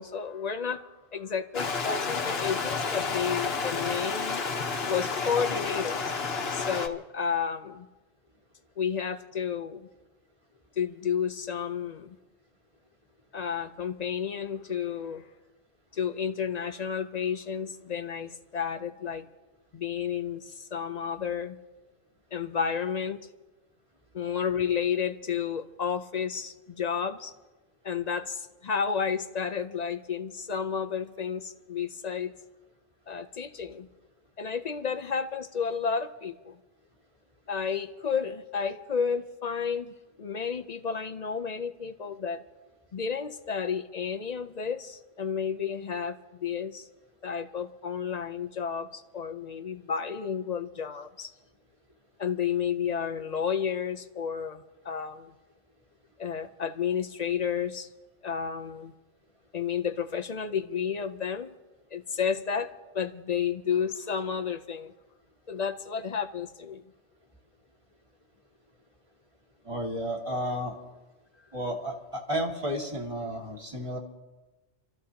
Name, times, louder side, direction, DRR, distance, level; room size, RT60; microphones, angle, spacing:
voice 1, 0.0-4.4 4.9-6.0 6.5-7.9 8.8-9.9 10.8-12.2 13.3-15.3 15.9-19.3 19.7-21.6 22.3-23.3 24.1-27.3 27.8-32.3 33.1-33.9 34.4-36.6 37.5-42.4 42.9-46.9 47.2-51.3 52.2-55.3 56.2-57.9 58.2-58.9 59.5-61.5 61.9-62.7 62.9-64.9 65.5-66.8, left 7 dB, 45° left, 8 dB, 0.6 m, -31 dB
Stream, 1.5-6.9, left 4 dB, 70° left, 1.3 m, -30 dB
voice 2, 69.6-70.7 71.5-74.0, equal, 30° right, -1 dB, 2.2 m, -32 dB
28.5 x 13.5 x 2.9 m, 1.1 s
omnidirectional pair, 1.1 m